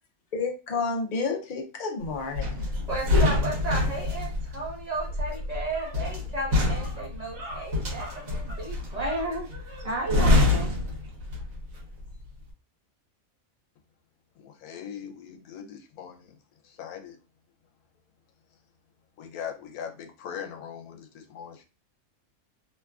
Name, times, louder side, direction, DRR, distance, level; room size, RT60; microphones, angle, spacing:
voice 1, 0.3-2.7, left 4 dB, 60° left, 2 dB, 0.5 m, -30 dB
sound 1, 2.3-11.7 12.0-12.3, left 2 dB, 70° right, 1.3 m, -26 dB
voice 2, 2.9-9.5 9.8-10.7, right 2 dB, 35° right, -4 dB, 0.7 m, -33 dB
sound 2, 4.6-4.7 5.0-10.0, equal, 55° right, 1.1 m, -44 dB
voice 3, 14.4-16.3 16.6-17.2 19.2-21.7, left 8 dB, 90° left, 4 dB, 1.1 m, -40 dB
3.0 x 2.3 x 2.3 m, 0.32 s
omnidirectional pair, 1.5 m